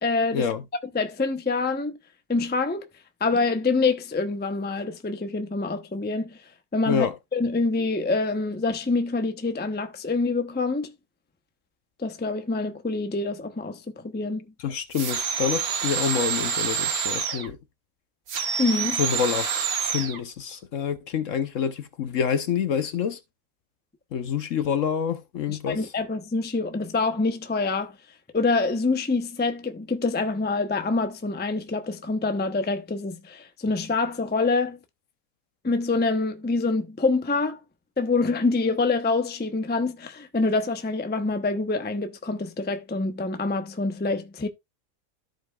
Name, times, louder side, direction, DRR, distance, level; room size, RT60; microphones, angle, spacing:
voice 1, 0.0-0.5 0.9-2.0 2.3-2.9 3.2-6.4 6.7-10.9 12.0-14.4 18.6-19.0 25.5-28.0 28.3-34.8 35.6-37.6 38.0-44.5, left 3 dB, 10° left, 0.5 m, -26 dB
voice 2, 14.6-17.6 19.0-19.5 19.9-23.2 24.1-25.8, left 7 dB, 60° left, 1.0 m, -27 dB
sound 1, 14.9-17.5 18.3-20.2, right 6 dB, 70° right, 1.6 m, -27 dB
14.0 x 5.2 x 2.4 m
omnidirectional pair, 1.7 m